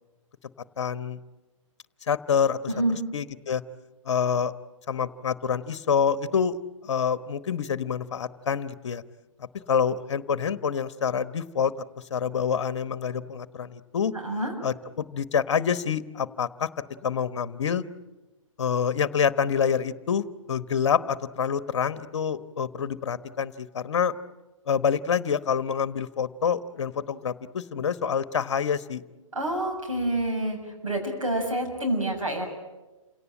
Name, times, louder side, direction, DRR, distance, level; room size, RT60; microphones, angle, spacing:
voice 1, 0.8-1.2 2.1-2.7 3.1-3.6 4.0-4.5 4.9-6.6 6.8-9.0 9.7-11.7 12.1-14.1 14.6-16.7 17.0-17.8 18.6-24.1 24.7-29.0, left 7 dB, 55° left, 15 dB, 1.1 m, -27 dB
voice 2, 29.3-30.6 30.8-32.5, right 1 dB, 75° right, 2 dB, 6.7 m, -27 dB
28.0 x 18.0 x 8.9 m, 1.1 s
figure-of-eight pair, 120°, 17 cm